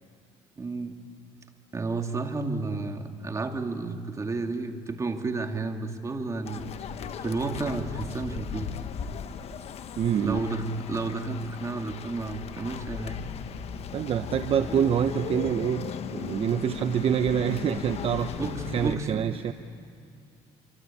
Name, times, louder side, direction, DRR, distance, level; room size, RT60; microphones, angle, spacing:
voice 1, 0.6-1.0 1.7-6.7 7.2-8.7 10.2-13.2 18.3-19.3, right 3 dB, 25° right, 5 dB, 2.3 m, -31 dB
sound 1, 6.4-19.0, left 8 dB, 55° left, 1.3 m, -37 dB
voice 2, 10.0-10.4 13.9-19.5, right 9 dB, 45° right, 9 dB, 0.9 m, -26 dB
27.0 x 25.0 x 8.6 m, 2.4 s
cardioid pair, 105°, 13 cm